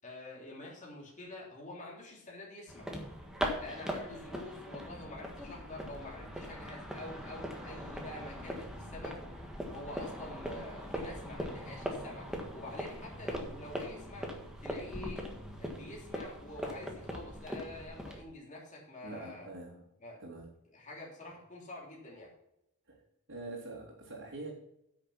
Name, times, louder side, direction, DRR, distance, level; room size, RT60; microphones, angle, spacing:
voice 1, 0.0-2.9 3.6-9.2 9.7-14.3 14.6-15.3 15.6-19.5 20.0-20.2 20.7-22.3, left 2 dB, 35° left, -3 dB, 3.3 m, -47 dB
sound 1, 2.7-18.2, equal, 5° right, 1.6 m, -40 dB
voice 2, 19.0-19.8 20.2-20.5 22.9-23.0 23.3-24.5, right 2 dB, 60° right, -6 dB, 2.7 m, -44 dB
9.6 x 6.5 x 5.7 m, 0.82 s
head